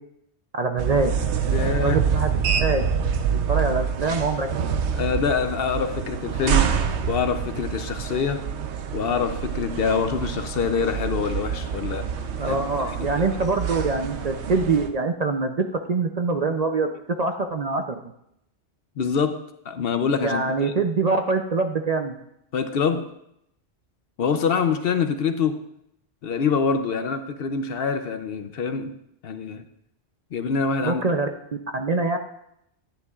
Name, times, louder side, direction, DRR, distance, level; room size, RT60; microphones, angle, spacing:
voice 1, 0.5-1.1 1.8-2.3 2.6-2.9 3.5-4.5 12.4-16.9 17.2-18.0 20.2-22.1 30.8-31.3 31.7-32.2, right 3 dB, 45° right, 5 dB, 0.5 m, -24 dB
sound 1, 0.8-14.9, right 7 dB, 75° right, 1.0 m, -26 dB
voice 2, 1.5-2.0 4.9-6.7 7.0-8.5 8.9-13.1 19.0-20.7 22.5-23.1 24.2-25.6 26.2-29.0 29.2-29.6 30.3-31.0, left 6 dB, 65° left, 9 dB, 0.8 m, -25 dB
11.0 x 10.0 x 2.4 m, 0.78 s
omnidirectional pair, 1.2 m